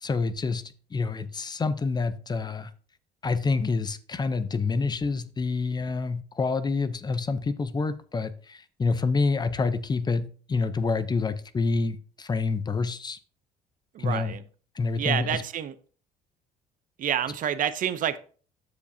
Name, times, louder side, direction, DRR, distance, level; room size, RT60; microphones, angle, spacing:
voice 1, 0.0-2.7 3.2-13.2 14.0-14.4 14.7-15.4, left 4 dB, 25° left, 0.6 m, -27 dB
voice 2, 13.9-14.4 15.0-15.7 17.0-18.2, right 10 dB, 50° right, 0.6 m, -28 dB
13.5 x 5.0 x 2.7 m
cardioid pair, 110°, 17 cm